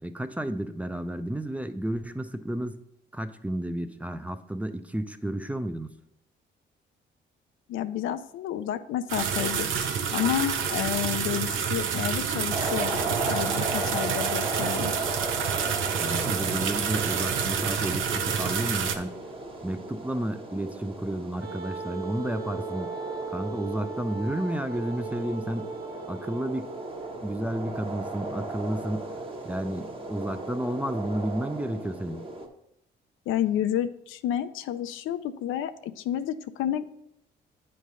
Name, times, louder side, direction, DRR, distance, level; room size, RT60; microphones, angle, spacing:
voice 1, 0.0-2.8 3.1-5.9 16.0-19.2 19.6-23.0 23.3-25.7 26.1-26.7 27.2-29.0 29.4-32.2, right 1 dB, 5° right, 9 dB, 0.4 m, -32 dB
voice 2, 7.7-13.0 13.3-14.9 33.3-36.9, left 11 dB, 85° left, 10 dB, 0.5 m, -30 dB
sound 1, 9.1-19.0, right 7 dB, 80° right, 0.7 m, -28 dB
sound 2, 12.5-32.5, right 2 dB, 25° right, 1.1 m, -36 dB
Wind instrument woodwind instrument, 21.4-27.4, right 5 dB, 50° right, 1.3 m, -38 dB
9.2 x 3.3 x 5.4 m, 0.79 s
cardioid pair, 90°, 20 cm